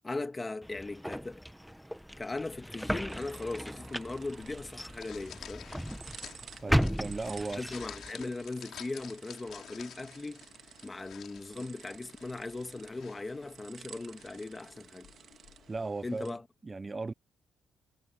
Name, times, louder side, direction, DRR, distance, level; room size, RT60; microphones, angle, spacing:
voice 1, 0.0-1.5 2.2-5.7 7.5-10.5 10.8-15.1 16.0-16.4, left 3 dB, 15° left, 1.9 m, -39 dB
sound 1, 0.6-8.1, equal, ahead, 0.7 m, -36 dB
sound 2, 3.1-16.3, right 8 dB, 55° right, 1.6 m, -54 dB
sound 3, 4.4-15.8, left 10 dB, 65° left, 4.1 m, -51 dB
voice 2, 6.6-7.6 15.7-16.4 16.6-17.1, right 3 dB, 20° right, 0.4 m, -36 dB
cardioid pair, 145°, 0 cm